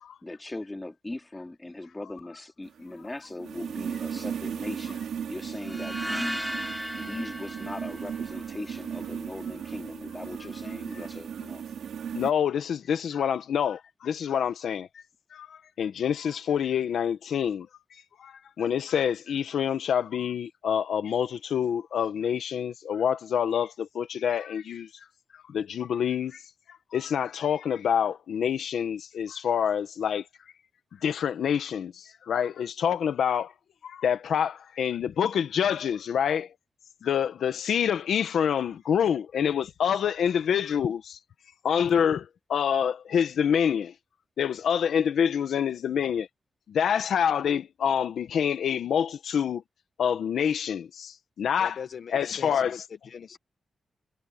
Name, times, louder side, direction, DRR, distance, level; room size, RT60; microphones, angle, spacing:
voice 1, 0.2-5.0 5.3-6.5 7.0-11.7, left 2 dB, 15° left, 2.7 m, -39 dB
sound 1, 2.7-12.3, right 8 dB, 90° right, 3.0 m, -36 dB
sound 2, 5.6-8.8, equal, ahead, 4.4 m, -36 dB
voice 2, 12.1-14.9 15.3-17.7 18.2-24.9 25.3-26.4 26.7-30.2 31.0-33.5 33.8-36.5 37.0-41.2 41.6-43.9 44.4-46.3 46.7-49.6 50.0-51.8 52.1-52.8, left 8 dB, 85° left, 1.3 m, -27 dB
voice 3, 51.6-52.8 53.0-53.4, left 7 dB, 60° left, 0.9 m, -41 dB
wide cardioid pair, 115°, 0 cm